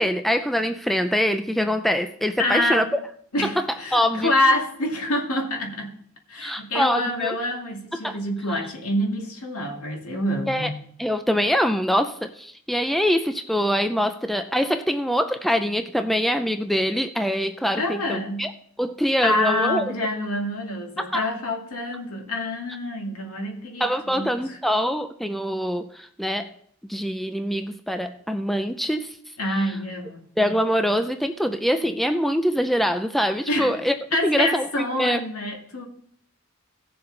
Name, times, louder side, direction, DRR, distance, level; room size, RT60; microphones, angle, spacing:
voice 1, 0.0-3.0 3.4-3.5 3.9-4.3 6.4-7.4 7.9-8.2 10.5-10.7 11.0-18.5 18.8-19.8 21.0-21.2 23.8-26.5 26.8-29.3 30.4-33.9 34.2-35.2, equal, ahead, 7 dB, 0.4 m, -24 dB
voice 2, 2.4-2.9 3.3-6.0 6.3-10.8 17.8-18.5 19.2-24.6 29.4-30.3 33.5-33.8 34.1-35.9, left 1 dB, 85° left, 1 dB, 2.1 m, -26 dB
17.0 x 6.9 x 3.9 m, 0.65 s
head